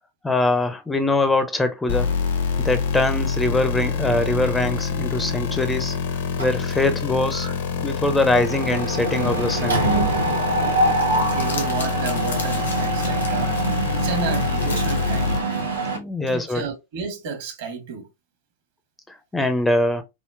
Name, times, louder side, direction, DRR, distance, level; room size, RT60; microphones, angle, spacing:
voice 1, 0.2-2.1 2.6-6.0 6.4-7.5 7.8-9.8 15.9-16.7 19.1-20.0, left 2 dB, 10° left, 0.4 m, -22 dB
sound 1, 1.9-15.4, left 5 dB, 65° left, 0.6 m, -26 dB
Mechanisms, 6.4-7.0 7.3-7.5 7.8-16.0, right 2 dB, 85° right, 1.0 m, -25 dB
Crumpling crinkling, 10.7-15.8, left 3 dB, 85° left, 1.0 m, -38 dB
voice 2, 11.3-13.6 13.9-15.4 16.3-18.1, right 5 dB, 60° right, 0.9 m, -31 dB
3.6 x 2.0 x 2.3 m
hypercardioid pair, 105°, 0 cm